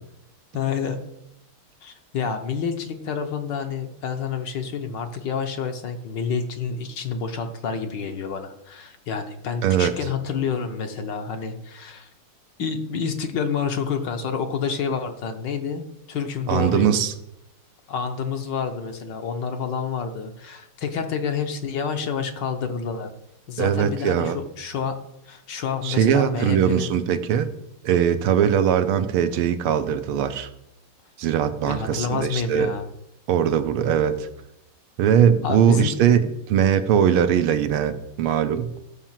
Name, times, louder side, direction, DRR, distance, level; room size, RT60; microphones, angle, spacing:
voice 1, 0.5-1.0 1.8-12.1 12.6-17.0 17.9-23.1 23.5-27.0 31.7-32.9 35.4-36.0, left 6 dB, 60° left, 6 dB, 1.5 m, -28 dB
voice 2, 16.5-17.1 23.6-24.4 25.8-27.5 27.8-30.5 31.2-32.7 33.3-34.3 35.0-38.7, right 8 dB, 80° right, 10 dB, 1.7 m, -20 dB
13.5 x 5.6 x 7.4 m, 0.83 s
omnidirectional pair, 2.4 m